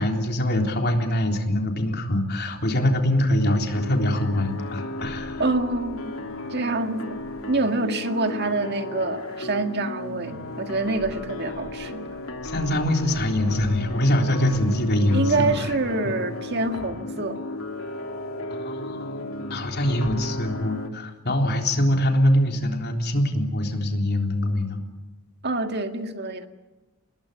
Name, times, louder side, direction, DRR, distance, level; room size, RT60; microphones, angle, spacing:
voice 1, 0.0-5.4 12.4-15.5 16.0-16.2 18.5-24.8, left 1 dB, 50° left, 3 dB, 3.7 m, -23 dB
sound 1, 3.7-20.9, left 2 dB, 80° left, 3.1 m, -34 dB
voice 2, 5.4-6.1 6.5-7.2 7.5-12.1 15.1-17.4 25.4-26.5, right 2 dB, 50° right, 6 dB, 1.9 m, -26 dB
27.5 x 20.5 x 8.1 m, 1.1 s
head